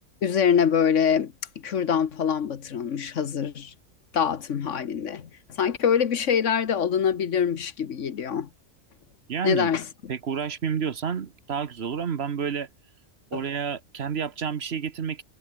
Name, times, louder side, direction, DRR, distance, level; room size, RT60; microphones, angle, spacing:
voice 1, 0.2-1.3 1.6-3.7 4.1-8.5 9.4-9.8 13.3-13.4, left 7 dB, 70° left, 1.4 m, -24 dB
voice 2, 9.3-9.7 10.1-12.7 13.3-15.2, right 7 dB, 55° right, 1.2 m, -29 dB
omnidirectional pair, 1.3 m